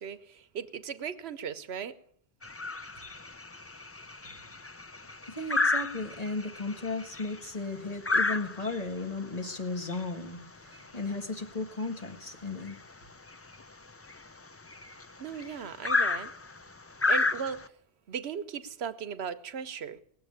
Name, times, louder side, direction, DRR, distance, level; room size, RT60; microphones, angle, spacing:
voice 1, 0.0-2.0 15.2-16.3 17.1-17.7 18.1-20.0, right 7 dB, 90° right, 1.1 m, -37 dB
sound 1, 2.4-17.7, left 3 dB, 25° left, 0.3 m, -33 dB
voice 2, 5.3-12.8, left 3 dB, 40° left, 1.8 m, -35 dB
19.0 x 7.6 x 8.7 m
omnidirectional pair, 1.1 m